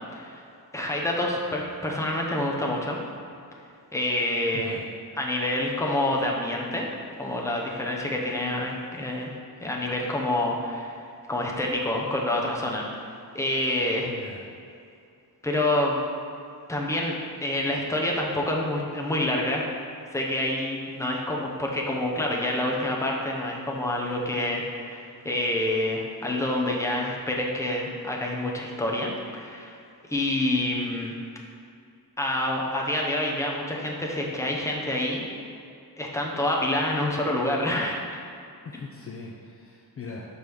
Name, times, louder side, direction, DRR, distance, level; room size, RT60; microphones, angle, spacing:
voice 1, 0.1-0.5 0.7-3.0 3.9-4.8 5.2-6.9 7.2-9.3 9.6-10.9 11.3-14.1 15.4-16.0 16.7-17.1 17.4-19.7 20.1-29.8 30.1-31.1 32.2-35.5 36.0-38.2, left 1 dB, 5° left, -2 dB, 0.8 m, -27 dB
voice 2, 14.0-14.4 38.6-40.2, left 4 dB, 35° left, -2 dB, 0.5 m, -40 dB
5.4 x 5.1 x 6.1 m, 2.5 s
wide cardioid pair, 165°, 39 cm